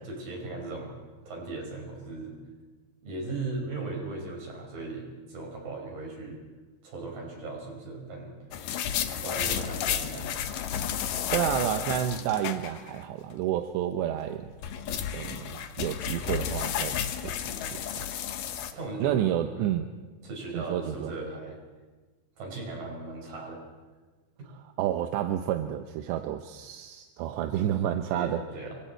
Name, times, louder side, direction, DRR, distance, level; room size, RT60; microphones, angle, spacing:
voice 1, 0.1-1.0 1.3-2.4 3.0-6.4 6.8-8.4 9.2-10.4 18.7-19.7 20.2-21.6 22.4-23.6 24.4-24.5 28.1-28.8, right 3 dB, 45° right, 0 dB, 7.1 m, -37 dB
sound 1, 8.5-13.0 13.3-13.4 14.3-18.7, left 9 dB, 75° left, 1.9 m, -32 dB
voice 2, 11.3-14.5 15.1-18.1 19.0-19.9 20.5-21.1 24.5-28.4, right 11 dB, 75° right, 7 dB, 2.8 m, -30 dB
30.0 x 25.5 x 4.5 m, 1.3 s
omnidirectional pair, 5.6 m